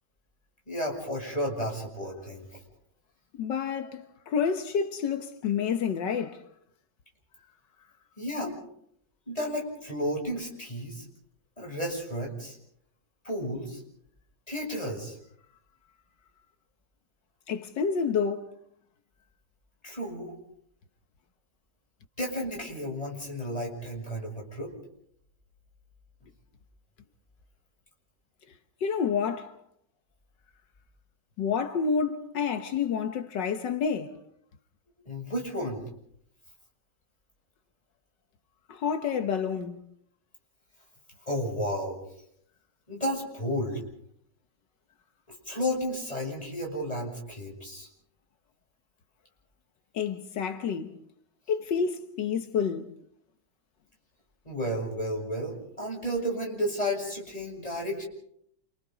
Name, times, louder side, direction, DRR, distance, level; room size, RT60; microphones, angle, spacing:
voice 1, 0.7-2.6 8.2-8.6 9.3-11.0 11.6-12.6 13.2-13.8 14.5-15.2 19.8-20.4 22.2-24.7 35.1-35.8 41.3-42.0 42.9-43.8 45.5-47.9 54.4-58.1, equal, 20° left, 7.6 m, -32 dB
voice 2, 3.4-6.4 17.5-18.5 28.8-29.6 31.4-34.2 38.7-39.8 49.9-50.9 51.5-52.9, left 6 dB, 85° left, 1.8 m, -29 dB
29.5 x 28.5 x 4.0 m
omnidirectional pair, 1.9 m